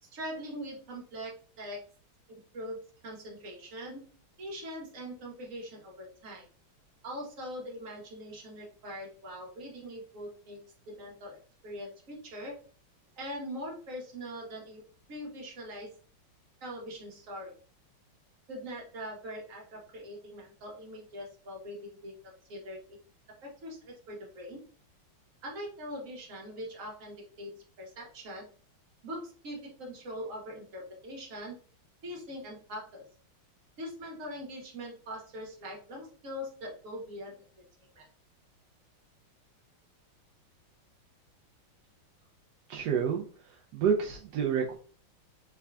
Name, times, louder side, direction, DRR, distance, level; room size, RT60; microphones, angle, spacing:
voice 1, 0.0-1.8 2.3-4.0 4.4-6.5 7.0-10.6 10.9-11.4 11.6-12.6 13.2-14.8 15.1-15.9 16.6-17.5 18.5-22.1 22.5-23.0 23.4-24.6 25.4-27.5 27.8-28.4 29.0-31.6 32.0-33.0 33.8-37.4 37.8-38.1, equal, 45° right, -1 dB, 1.3 m, -42 dB
voice 2, 42.7-43.2 43.7-44.8, right 7 dB, 75° right, -1 dB, 0.9 m, -28 dB
3.5 x 3.3 x 2.3 m, 0.40 s
omnidirectional pair, 2.2 m